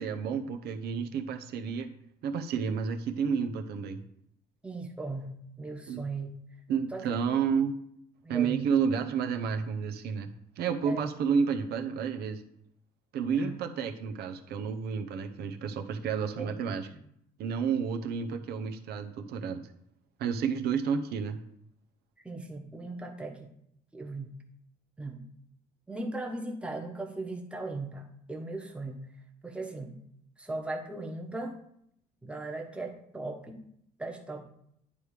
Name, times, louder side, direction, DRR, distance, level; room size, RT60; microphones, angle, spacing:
voice 1, 0.0-1.9 2.2-4.0 5.9-6.0 6.7-7.7 8.3-12.4 13.1-16.9 17.4-19.7 20.2-21.4, right 6 dB, 70° right, 5 dB, 0.7 m, -30 dB
voice 2, 4.6-6.3 6.9-7.0 7.3-7.4 8.2-8.6 10.8-11.1 13.4-13.5 16.4-16.7 16.9-17.0 22.2-23.5 23.9-24.3 25.0-25.2 25.9-29.1 29.4-30.0 30.4-31.6 32.2-33.6 34.0-34.4, right 2 dB, 5° right, 1 dB, 1.2 m, -38 dB
9.8 x 3.4 x 4.8 m, 0.72 s
cardioid pair, 110°, 17 cm